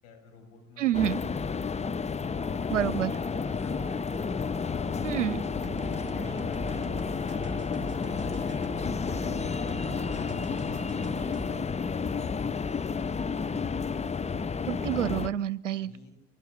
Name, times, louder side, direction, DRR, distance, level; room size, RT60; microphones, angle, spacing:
voice 1, 0.0-4.3 5.9-7.6 12.6-13.8 15.8-16.1, left 4 dB, 65° left, 2 dB, 7.0 m, -53 dB
voice 2, 0.8-1.2 2.7-3.1 5.0-5.4 14.7-15.9, right 10 dB, 80° right, 18 dB, 0.8 m, -28 dB
sound 1, 0.9-15.3, left 5 dB, 20° left, 0.8 m, -31 dB
sound 2, 2.4-14.3, right 5 dB, 10° right, 5.2 m, -51 dB
sound 3, 5.6-11.6, right 9 dB, 30° right, 0.8 m, -44 dB
25.0 x 20.0 x 8.1 m, 0.77 s
figure-of-eight pair, 55°, 36 cm